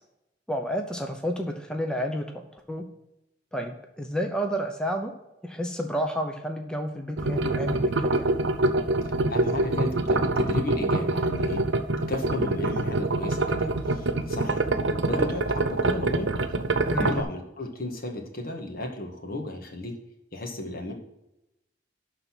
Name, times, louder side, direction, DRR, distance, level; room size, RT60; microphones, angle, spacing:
voice 1, 0.5-2.2 2.5-2.8 3.5-5.1 5.4-8.3 16.9-17.2, equal, 5° left, 3 dB, 0.8 m, -30 dB
sound 1, 7.2-17.2, right 2 dB, 90° right, 0.8 m, -25 dB
voice 2, 9.3-11.6 12.1-14.6 15.0-16.4 16.9-20.0 20.3-20.9, left 2 dB, 55° left, 2 dB, 1.8 m, -34 dB
11.5 x 4.1 x 6.1 m, 0.90 s
head